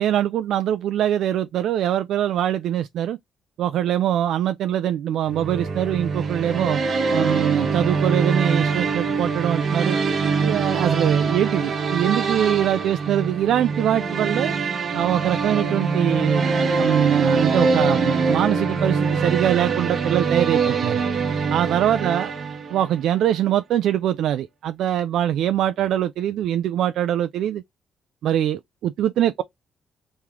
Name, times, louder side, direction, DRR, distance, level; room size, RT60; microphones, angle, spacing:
voice 1, 0.0-3.2 3.6-6.8 7.1-10.0 10.4-14.5 14.9-16.4 16.8-21.0 21.5-22.3 22.7-27.6 28.2-29.4, right 11 dB, 75° right, 0.3 m, -23 dB
sound 1, 5.3-23.0, right 4 dB, 50° right, 0.9 m, -23 dB
3.6 x 3.1 x 2.9 m
cardioid pair, 90°, 0 cm